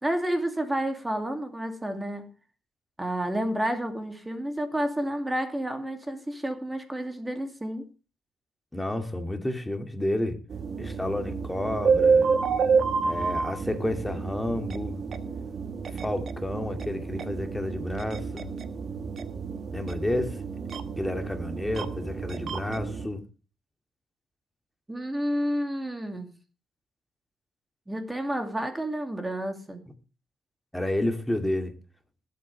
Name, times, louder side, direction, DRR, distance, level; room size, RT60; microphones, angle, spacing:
voice 1, 0.0-2.2 3.0-7.9 24.9-26.3 27.9-29.8, right 1 dB, 15° right, 2.5 m, -30 dB
voice 2, 8.7-10.4 10.8-12.3 13.0-15.0 15.9-18.5 19.7-20.4 21.0-23.2 30.7-31.7, left 1 dB, 10° left, 2.2 m, -30 dB
sound 1, 10.5-23.1, right 5 dB, 55° right, 1.3 m, -29 dB
20.5 x 8.4 x 3.3 m
cardioid pair, 90°, 0 cm